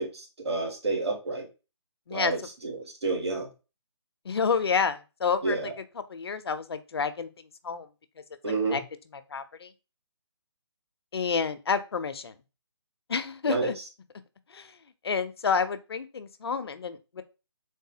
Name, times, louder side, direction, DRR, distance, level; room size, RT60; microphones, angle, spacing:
voice 1, 0.0-1.5 2.1-2.4 2.6-3.5 5.4-5.6 8.4-8.8 13.5-13.7, right 3 dB, 65° right, 1 dB, 1.8 m, -29 dB
voice 2, 2.1-2.5 4.2-7.3 7.6-7.9 8.7-8.8 9.1-9.7 11.1-12.3 13.1-13.8 14.5-14.8 15.0-17.2, left 5 dB, 60° left, 11 dB, 0.6 m, -29 dB
4.0 x 3.3 x 2.7 m, 0.29 s
figure-of-eight pair, 150°, 15 cm